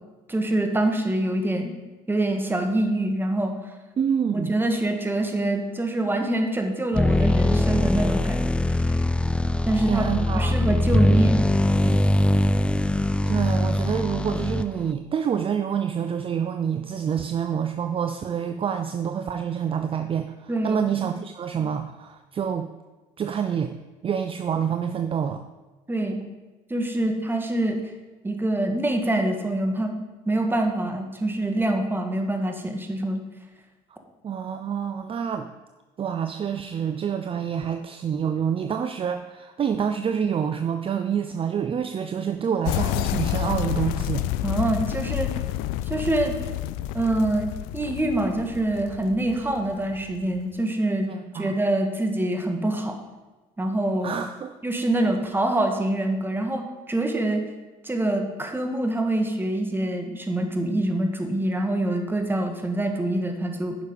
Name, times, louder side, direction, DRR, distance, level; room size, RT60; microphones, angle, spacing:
voice 1, 0.3-1.7 2.1-3.5 4.3-8.5 8.9-9.0 9.6-10.1 10.3-11.6 11.8-12.0 20.5-21.1 25.9-26.2 26.7-27.8 28.2-29.9 30.2-33.2 44.4-45.3 45.9-46.3 46.9-51.1 51.3-53.0 53.6-54.2 54.6-57.4 57.8-63.8, right 1 dB, 15° right, 4 dB, 1.7 m, -25 dB
voice 2, 4.0-4.6 9.7-10.5 13.3-22.7 23.2-23.7 24.0-25.4 34.2-35.5 36.0-44.2 49.5-49.6 51.1-51.5 54.0-54.5, right 7 dB, 35° right, 8 dB, 0.6 m, -27 dB
sound 1, 6.9-14.9, left 1 dB, 5° left, 0.4 m, -22 dB
sound 2, 42.7-50.4, left 13 dB, 85° left, 0.4 m, -29 dB
10.0 x 6.4 x 5.3 m, 1.2 s
supercardioid pair, 80°, 15 cm